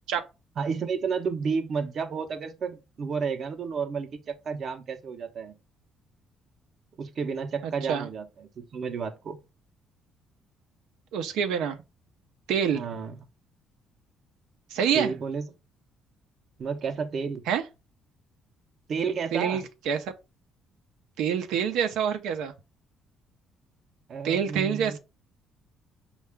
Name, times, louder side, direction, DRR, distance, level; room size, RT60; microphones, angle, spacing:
voice 1, 0.6-5.6 7.0-9.4 12.7-13.2 14.9-15.5 16.6-17.4 18.9-19.6 24.1-25.0, right 5 dB, 45° right, 0.6 m, -31 dB
voice 2, 11.1-11.8 12.5-12.8 14.7-15.1 17.5-17.6 19.3-20.1 21.2-22.5 24.2-25.0, right 8 dB, 90° right, 0.6 m, -26 dB
5.6 x 2.4 x 3.3 m
cardioid pair, 140°, 0 cm